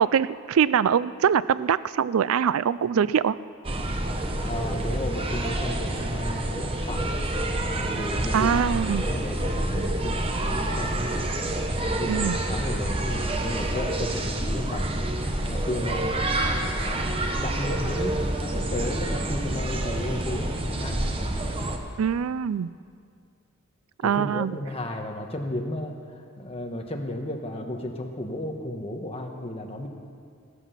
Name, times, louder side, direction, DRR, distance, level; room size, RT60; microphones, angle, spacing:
voice 1, 0.0-3.4 8.3-9.0 12.1-12.4 22.0-22.7 24.0-24.6, right 7 dB, 80° right, 17 dB, 0.4 m, -23 dB
sound 1, 3.6-21.8, right 1 dB, 25° right, 1.0 m, -28 dB
voice 2, 4.4-7.1 7.7-8.6 8.9-11.1 11.8-14.9 15.4-16.1 16.8-21.0 24.0-26.0 26.4-29.9, left 1 dB, 25° left, 3 dB, 1.3 m, -33 dB
16.5 x 13.0 x 5.8 m, 2.3 s
head